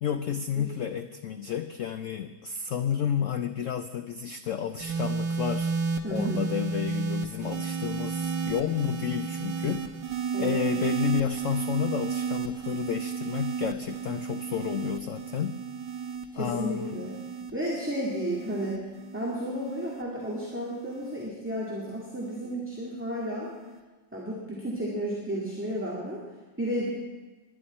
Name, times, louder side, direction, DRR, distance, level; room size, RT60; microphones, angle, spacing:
voice 1, 0.0-5.7 6.1-9.9 10.4-15.6 16.3-17.0, left 8 dB, 80° left, 9 dB, 0.7 m, -31 dB
sound 1, 4.8-21.3 22.2-22.5, right 5 dB, 75° right, 1.7 m, -33 dB
voice 2, 6.0-6.5 10.3-10.6 16.3-17.1 17.5-18.8 19.1-23.5 24.1-26.2 26.6-26.9, equal, 5° right, -5 dB, 2.0 m, -32 dB
20.0 x 11.5 x 4.3 m, 1.2 s
omnidirectional pair, 1.9 m